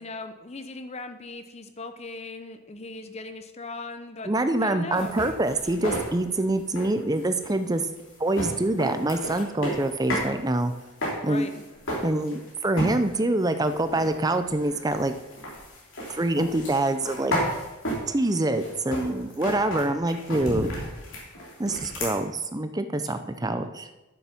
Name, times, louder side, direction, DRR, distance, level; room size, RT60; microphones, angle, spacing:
voice 1, 0.0-4.3 4.6-5.3 11.3-11.7, left 3 dB, 30° left, 8 dB, 0.7 m, -38 dB
voice 2, 4.2-7.8 8.2-10.7 11.2-11.5 12.0-15.1 16.1-17.4 18.1-20.7 21.6-23.8, right 2 dB, 15° right, 9 dB, 0.5 m, -25 dB
sound 1, 4.9-10.3 10.6-12.5 12.8-13.2 13.6-22.1, equal, 60° left, 3.2 m, -33 dB
10.5 x 6.9 x 5.9 m, 1.1 s
head